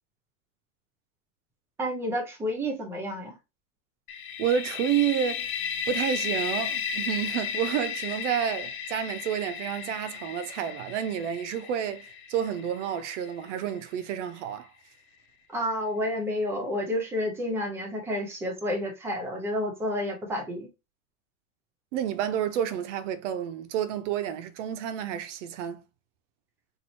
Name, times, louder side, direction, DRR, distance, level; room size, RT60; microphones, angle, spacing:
voice 1, 1.8-3.4 15.5-20.7, left 1 dB, 5° right, 0.7 m, -30 dB
sound 1, 4.1-13.8, left 7 dB, 90° left, 1.2 m, -34 dB
voice 2, 4.4-5.5 5.9-14.7 21.9-25.8, right 9 dB, 60° right, 0.6 m, -30 dB
3.0 x 2.5 x 4.1 m
supercardioid pair, 160°, 41 cm